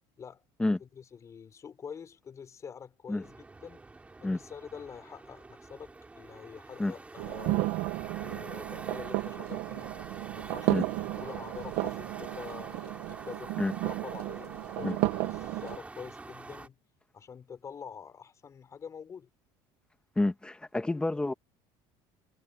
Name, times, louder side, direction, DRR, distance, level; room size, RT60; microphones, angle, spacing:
voice 1, 0.8-3.8 4.2-7.7 8.2-9.9 10.3-13.5 13.8-16.8 17.1-19.3, left 7 dB, 25° left, 5.9 m, -46 dB
sound 1, 3.2-16.7, right 3 dB, 10° right, 4.0 m, -47 dB
sound 2, 7.2-15.8, right 19 dB, 75° right, 1.3 m, -33 dB
voice 2, 20.2-21.3, left 2 dB, 10° left, 1.4 m, -28 dB
cardioid pair, 150°, 12 cm